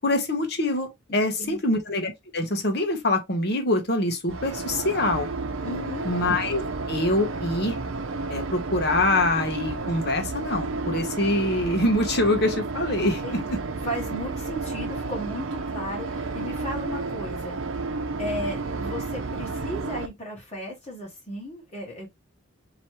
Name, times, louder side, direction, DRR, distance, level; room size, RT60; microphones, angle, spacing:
voice 1, 0.0-5.3 6.0-6.6 6.9-7.8 8.3-13.6, left 1 dB, 50° left, 1.2 m, -25 dB
sound 1, 4.3-20.1, right 3 dB, 80° right, 0.7 m, -31 dB
voice 2, 5.6-6.1 13.0-13.5 13.8-17.7 18.2-22.1, left 1 dB, 35° left, 1.4 m, -35 dB
4.4 x 3.1 x 3.1 m
head